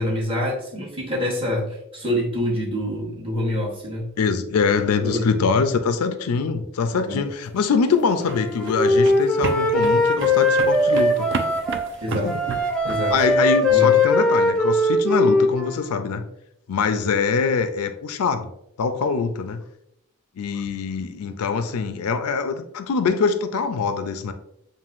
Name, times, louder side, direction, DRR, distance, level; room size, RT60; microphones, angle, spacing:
voice 1, 0.0-4.1 5.0-5.3 6.9-7.2 12.0-12.4 12.8-13.2 13.7-13.9, equal, 25° right, -3 dB, 1.0 m, -26 dB
voice 2, 4.2-11.3 12.2-12.4 13.1-16.2 16.7-18.5 18.8-19.6 20.4-24.3, left 5 dB, 85° left, 8 dB, 0.4 m, -23 dB
sound 1, 7.7-13.4, right 4 dB, 50° right, 0.4 m, -32 dB
Wind instrument woodwind instrument, 8.3-11.9 12.3-15.9, left 2 dB, 5° left, 0.5 m, -20 dB
7.2 x 2.5 x 2.5 m, 0.80 s
head